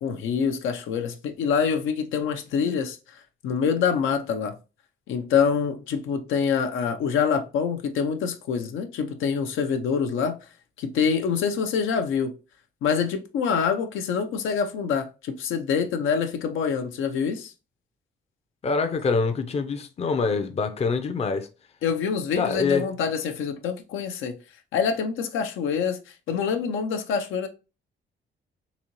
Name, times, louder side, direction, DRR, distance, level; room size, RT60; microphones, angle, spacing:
voice 1, 0.0-4.6 5.1-10.4 10.8-12.3 12.8-17.5 21.8-24.4 24.7-27.5, left 6 dB, 85° left, 0.6 m, -26 dB
voice 2, 18.6-21.5 22.4-22.9, left 4 dB, 30° left, 0.5 m, -25 dB
4.0 x 2.8 x 3.0 m
cardioid pair, 90°, 20 cm